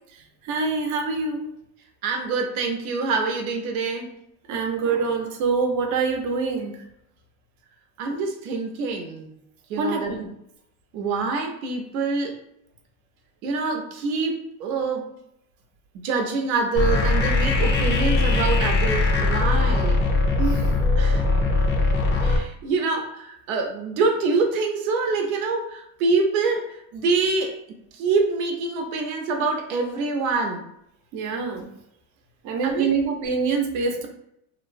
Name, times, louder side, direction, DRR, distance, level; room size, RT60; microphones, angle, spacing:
voice 1, 0.4-1.5 4.5-6.8 9.8-10.3 20.4-20.6 31.1-31.7 32.4-34.1, right 4 dB, 45° right, 3 dB, 0.6 m, -25 dB
voice 2, 2.0-4.1 8.0-9.3 9.7-10.1 10.9-12.4 13.4-15.1 16.0-20.0 21.0-21.2 22.2-27.6 27.9-30.7 32.6-33.0, right 4 dB, 90° right, 3 dB, 0.7 m, -25 dB
sound 1, 16.7-22.4, left 3 dB, 25° left, 0.4 m, -20 dB
2.9 x 2.0 x 2.5 m, 0.76 s
supercardioid pair, 115°, 42 cm